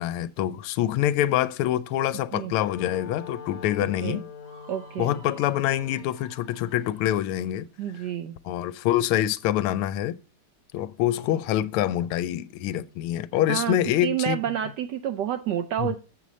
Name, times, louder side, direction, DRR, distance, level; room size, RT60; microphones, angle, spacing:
voice 1, 0.0-4.2 5.0-7.7 8.4-10.2 10.7-14.4 15.8-16.0, left 12 dB, 85° left, 1.5 m, -25 dB
Wind instrument woodwind instrument, 2.2-6.3, left 7 dB, 60° left, 1.4 m, -43 dB
Screaming, 4.4-7.4, right 8 dB, 45° right, 1.0 m, -53 dB
voice 2, 4.7-5.2 7.8-8.4 13.5-16.0, right 10 dB, 75° right, 0.9 m, -29 dB
7.4 x 6.8 x 4.1 m
omnidirectional pair, 2.4 m